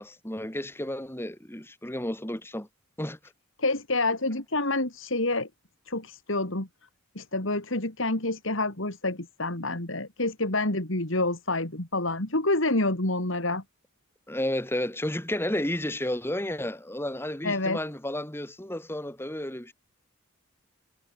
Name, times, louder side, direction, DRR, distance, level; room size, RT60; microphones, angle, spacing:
voice 1, 0.0-2.7 3.0-3.2 14.3-19.7, left 1 dB, 10° left, 2.2 m, -32 dB
voice 2, 3.6-5.5 5.9-6.7 7.1-13.6 17.4-17.8, left 2 dB, 60° left, 3.3 m, -28 dB
head